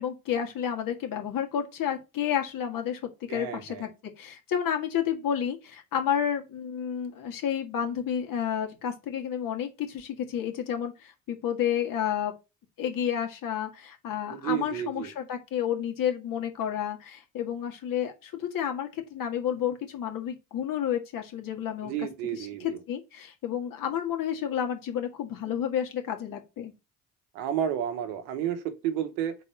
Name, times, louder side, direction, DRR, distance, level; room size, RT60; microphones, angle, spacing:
voice 1, 0.0-3.9 4.2-12.3 12.8-26.7, left 9 dB, 60° left, 1.9 m, -31 dB
voice 2, 3.3-3.9 14.3-15.1 21.8-22.8 27.3-29.4, right 10 dB, 80° right, 1.2 m, -31 dB
4.2 x 4.1 x 5.5 m
hypercardioid pair, 60°, 38 cm